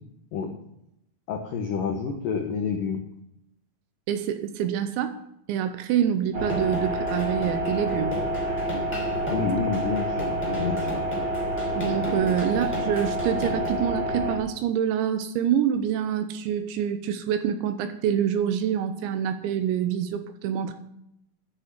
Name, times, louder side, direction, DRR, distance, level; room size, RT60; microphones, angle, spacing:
voice 1, 1.3-3.0 9.3-11.0 12.2-12.3, left 5 dB, 85° left, 4 dB, 1.9 m, -29 dB
voice 2, 4.1-5.2 5.5-8.1 11.8-20.7, right 9 dB, 80° right, 10 dB, 2.9 m, -26 dB
sound 1, 6.3-14.4, right 1 dB, 25° right, 3.1 m, -28 dB
sound 2, 6.4-13.8, equal, 5° left, 3.2 m, -38 dB
11.0 x 6.3 x 8.2 m, 0.81 s
omnidirectional pair, 5.7 m